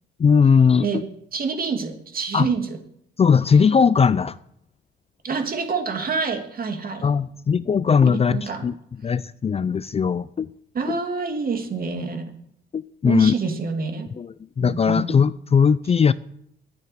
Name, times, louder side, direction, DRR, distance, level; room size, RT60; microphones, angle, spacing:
voice 1, 0.2-1.0 2.3-2.5 3.2-4.4 7.0-8.7 9.0-10.5 10.9-11.0 12.7-13.3 14.2-16.1, left 6 dB, 30° left, 0.5 m, -19 dB
voice 2, 1.3-2.8 5.2-7.0 8.1-8.7 10.7-12.3 13.0-14.1 14.6-15.1, right 4 dB, 45° right, 2.6 m, -27 dB
10.5 x 9.0 x 9.3 m
cardioid pair, 90°, 20 cm